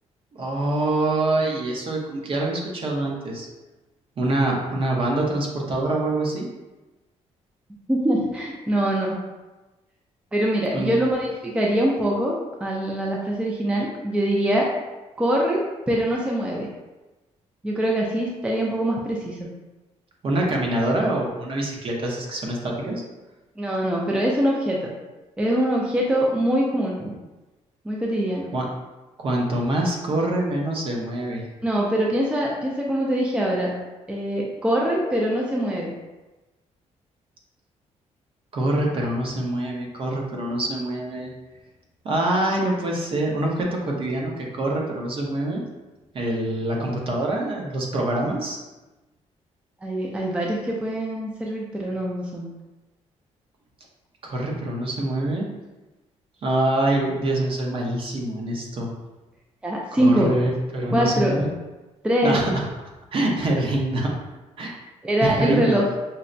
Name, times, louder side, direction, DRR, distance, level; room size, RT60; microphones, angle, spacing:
voice 1, 0.4-3.5 4.2-6.5 10.7-10.9 20.2-23.0 28.5-28.7 29.2-31.4 38.5-41.3 42.0-45.6 46.1-48.6 54.2-55.5 56.4-58.9 59.9-61.5 62.2-62.6 63.1-64.1 64.6-64.7 65.2-65.8, right 1 dB, 50° right, -1 dB, 0.7 m, -25 dB
voice 2, 7.9-9.2 10.3-14.7 15.2-16.7 17.6-19.5 23.6-24.9 25.4-27.2 27.8-28.5 31.6-33.7 34.1-35.9 49.8-52.5 59.6-60.3 60.9-61.4 62.0-62.4 65.0-65.8, right 1 dB, 10° right, -2 dB, 0.4 m, -23 dB
5.5 x 2.1 x 2.5 m, 1.1 s
cardioid pair, 135°, 12 cm